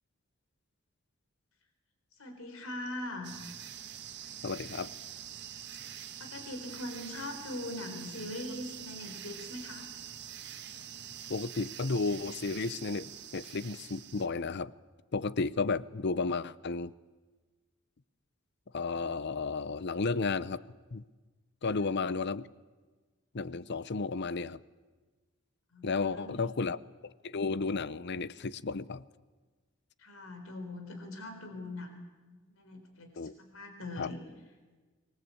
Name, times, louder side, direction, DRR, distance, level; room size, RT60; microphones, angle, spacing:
voice 1, 2.2-3.3 5.8-9.9 21.6-21.8 25.7-26.5 30.0-34.2, left 1 dB, 90° left, 6 dB, 4.1 m, -42 dB
sound 1, 3.2-14.3, right 9 dB, 55° right, 1.6 m, -45 dB
voice 2, 4.4-4.9 11.3-14.7 15.1-16.9 18.7-20.6 20.9-21.0 21.6-22.5 23.3-24.6 25.8-26.8 27.0-29.0 33.2-33.4 34.0-34.1, left 4 dB, 55° left, 17 dB, 0.7 m, -33 dB
25.5 x 20.5 x 8.6 m, 1.3 s
head